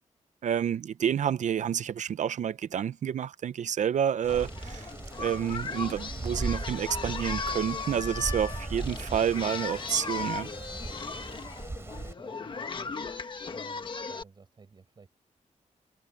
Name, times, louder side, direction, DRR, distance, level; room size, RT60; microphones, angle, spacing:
voice 1, 0.4-4.9 5.2-10.5, right 9 dB, 65° right, 0.5 m, -29 dB
Wind, 4.2-12.1, right 2 dB, 20° right, 4.3 m, -38 dB
Singing, 4.3-14.2, left 4 dB, 35° left, 1.4 m, -37 dB
voice 2, 11.3-13.0 13.5-15.1, right 4 dB, 35° right, 5.2 m, -55 dB
wide cardioid pair, 170°, 14 cm